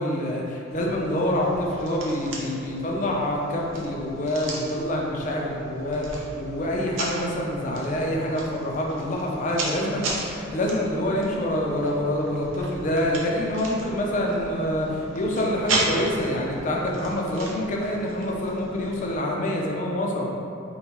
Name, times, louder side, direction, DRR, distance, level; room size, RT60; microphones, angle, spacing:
voice 1, 0.0-20.3, left 1 dB, 40° left, -2 dB, 0.5 m, -26 dB
sound 1, 0.7-19.2, right 2 dB, 70° right, 0.6 m, -35 dB
5.2 x 2.2 x 2.9 m, 2.8 s
head